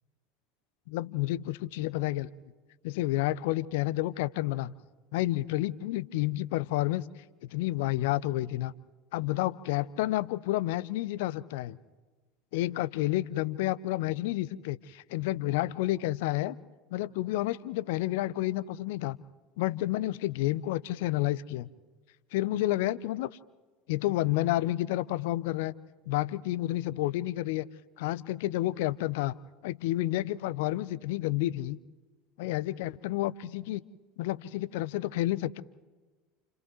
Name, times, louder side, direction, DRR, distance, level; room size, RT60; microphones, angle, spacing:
voice 1, 0.9-2.3 2.8-4.7 5.1-7.0 7.5-8.7 9.1-11.8 12.5-16.6 16.9-19.2 19.6-21.7 22.3-23.3 23.9-25.7 26.1-27.7 28.0-29.3 29.6-31.8 32.4-33.8 34.2-35.6, left 16 dB, 65° left, 18 dB, 0.6 m, -30 dB
29.5 x 29.0 x 3.2 m, 1.3 s
figure-of-eight pair, 75°, 0 cm